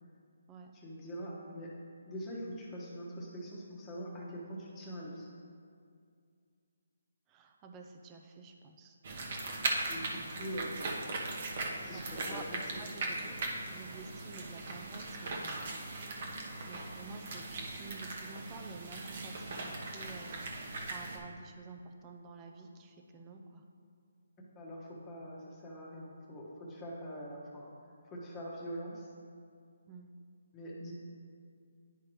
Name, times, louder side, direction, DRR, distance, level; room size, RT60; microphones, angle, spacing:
voice 1, 0.7-1.7 2.1-5.3 9.9-11.4 11.8-12.8 24.5-27.7 28.0-29.1 30.5-30.9, equal, 15° left, -3 dB, 1.2 m, -43 dB
voice 2, 7.3-9.0 11.8-12.4 12.8-15.8 16.7-23.6 29.9-30.1, right 4 dB, 20° right, 3 dB, 0.5 m, -50 dB
sound 1, 9.0-21.2, right 2 dB, 45° right, 1.0 m, -39 dB
10.5 x 4.7 x 3.1 m, 2.3 s
hypercardioid pair, 160°, 0 cm